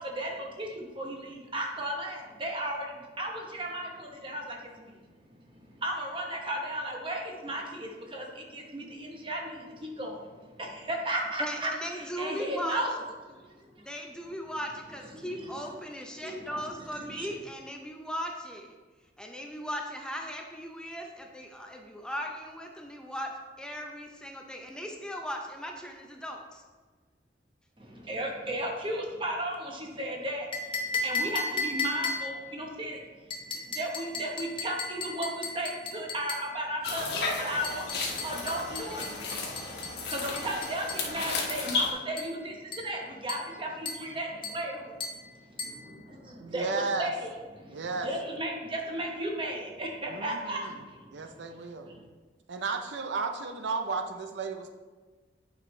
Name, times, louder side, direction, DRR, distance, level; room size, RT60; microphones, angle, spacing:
voice 1, 0.0-5.0 5.5-10.3 10.6-13.0 13.3-13.5 15.1-15.6 16.2-16.6 16.9-17.3 27.8-37.9 38.2-39.2 40.0-44.8 45.2-45.4 45.7-45.8 46.3-51.2 51.8-52.0, right 1 dB, 30° right, 0 dB, 1.1 m, -35 dB
voice 2, 11.4-12.8 13.7-18.8 19.2-26.6, equal, 5° left, 2 dB, 0.5 m, -38 dB
sound 1, 30.5-32.5 33.3-36.5 37.6-41.1 42.2-42.4 42.7-43.0 43.3-43.6 43.9-44.1 44.4-44.7 45.0-45.3 45.6-45.8, left 3 dB, 30° left, 0.8 m, -35 dB
sound 2, 36.8-41.9, left 3 dB, 65° left, 1.3 m, -33 dB
voice 3, 46.4-47.1 47.7-48.1 50.1-50.8 51.1-51.9 52.5-54.7, right 4 dB, 80° right, 6 dB, 0.6 m, -34 dB
9.2 x 5.4 x 3.2 m, 1.4 s
head